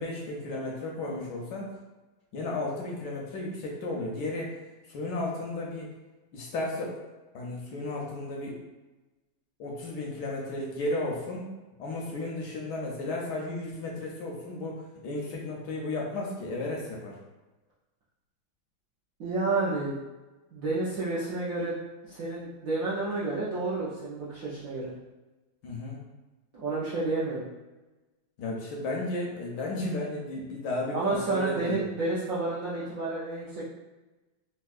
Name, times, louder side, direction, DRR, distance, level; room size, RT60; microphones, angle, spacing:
voice 1, 0.0-1.7 2.3-4.6 4.8-5.9 6.3-7.0 7.3-8.6 9.6-11.5 11.8-17.2 25.6-26.0 28.4-31.9, left 2 dB, 75° left, -2 dB, 1.0 m, -34 dB
voice 2, 19.2-20.0 20.5-24.9 26.5-27.4 30.9-33.6, right 3 dB, 70° right, -9 dB, 0.8 m, -30 dB
4.2 x 2.2 x 2.3 m, 1.1 s
omnidirectional pair, 2.2 m